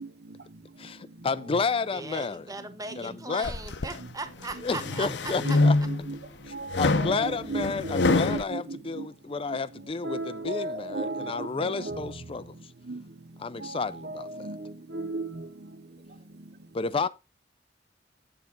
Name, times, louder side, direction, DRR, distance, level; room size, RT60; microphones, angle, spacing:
voice 1, 0.8-2.5 3.0-3.6 4.6-5.8 6.5-12.7 13.4-14.5 16.7-17.1, left 4 dB, 30° left, 0.4 m, -31 dB
voice 2, 1.9-5.6, right 3 dB, 20° right, 1.0 m, -39 dB
sound 1, 3.4-4.0 4.5-6.1 6.7-8.4, left 2 dB, 70° left, 0.7 m, -25 dB
voice 3, 7.2-7.6 8.1-8.6 10.0-11.2 11.6-11.9 14.5-14.6 14.9-15.3, right 2 dB, 60° right, 1.1 m, -33 dB
9.0 x 7.1 x 3.9 m
head